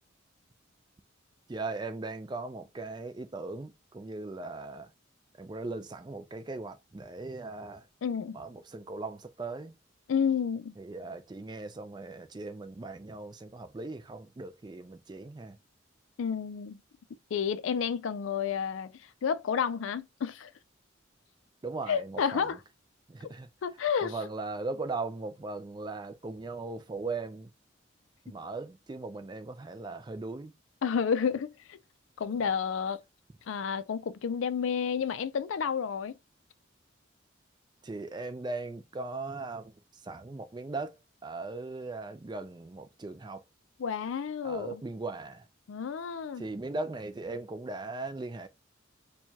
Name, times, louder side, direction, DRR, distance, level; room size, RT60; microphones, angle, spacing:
voice 1, 1.5-4.9 5.4-7.9 8.3-9.7 10.8-15.6 21.6-22.5 23.1-23.5 24.0-27.5 28.3-30.5 32.3-32.4 37.8-41.0 41.2-43.4 44.4-45.5 46.4-48.5, right 3 dB, 20° right, 0.3 m, -38 dB
voice 2, 8.0-8.4 10.1-10.7 16.2-16.8 17.3-18.9 19.2-20.5 21.9-22.6 23.6-24.2 30.8-31.8 32.2-33.0 33.5-36.1 43.8-44.8 45.7-46.5, left 7 dB, 75° left, 0.4 m, -30 dB
4.5 x 2.2 x 2.8 m
head